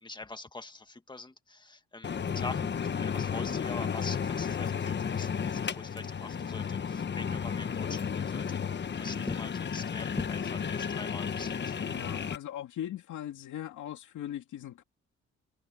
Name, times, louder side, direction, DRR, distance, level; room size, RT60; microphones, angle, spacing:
voice 1, 0.0-8.6 9.0-11.7, left 3 dB, 15° left, 2.0 m, -43 dB
sound 1, 2.0-12.4, left 7 dB, 35° left, 1.1 m, -33 dB
voice 2, 11.9-14.8, left 11 dB, 75° left, 2.4 m, -39 dB
cardioid pair, 90°, 30 cm